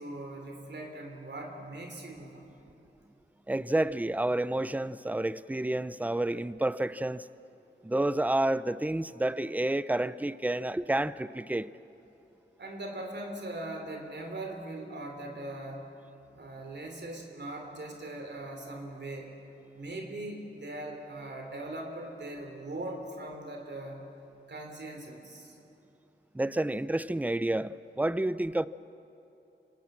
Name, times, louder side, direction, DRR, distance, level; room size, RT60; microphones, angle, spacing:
voice 1, 0.0-2.5 12.6-15.9 16.3-19.3 19.7-24.0 24.5-25.6, right 1 dB, 60° right, 3.4 m, -40 dB
voice 2, 3.5-7.3 7.8-11.7 26.3-28.7, right 1 dB, 10° right, 0.6 m, -29 dB
26.5 x 18.0 x 7.5 m
cardioid pair, 55°, 20 cm